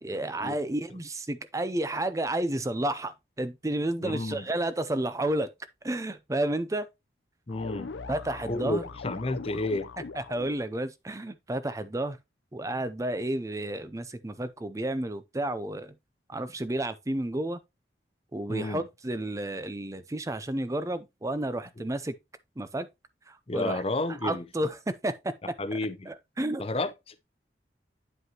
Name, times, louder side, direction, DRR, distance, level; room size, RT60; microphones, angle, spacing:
voice 1, 0.0-5.5 5.8-6.9 8.1-8.8 10.2-12.2 12.5-15.9 16.3-17.6 18.3-22.1 22.6-22.9 23.3-23.8 24.1-25.3 25.7-25.8 26.1-26.6, right 1 dB, 15° right, 0.5 m, -31 dB
voice 2, 4.0-4.5 7.5-7.9 8.5-9.9 18.5-18.9 23.5-24.4 25.6-26.1 26.6-27.1, left 2 dB, 30° left, 0.7 m, -31 dB
sound 1, 7.5-10.6, left 4 dB, 85° left, 0.6 m, -40 dB
9.6 x 5.3 x 2.9 m
head